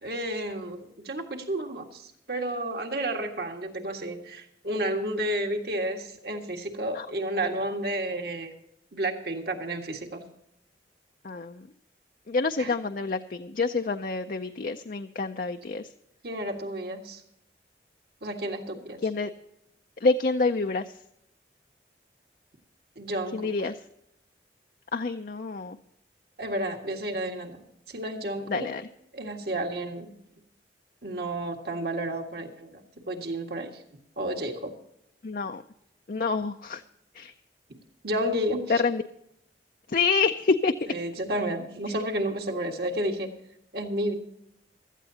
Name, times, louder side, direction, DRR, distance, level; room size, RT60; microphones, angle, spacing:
voice 1, 0.0-8.5 8.9-10.3 12.6-12.7 16.2-17.2 18.2-19.0 23.0-23.5 26.4-27.6 27.9-28.7 29.1-30.1 31.0-32.8 33.1-33.8 34.2-34.7 38.0-38.8 40.9-43.4 43.7-44.1, right 1 dB, 60° right, 3 dB, 1.8 m, -31 dB
voice 2, 11.2-11.7 12.3-15.9 19.0-19.3 20.0-21.0 23.3-23.8 24.9-25.8 28.5-28.9 35.2-35.6 36.1-36.8 37.1-37.3 38.7-39.0 39.9-40.7 41.9-42.0, left 4 dB, 50° left, 6 dB, 0.5 m, -27 dB
16.5 x 13.0 x 2.8 m, 0.78 s
head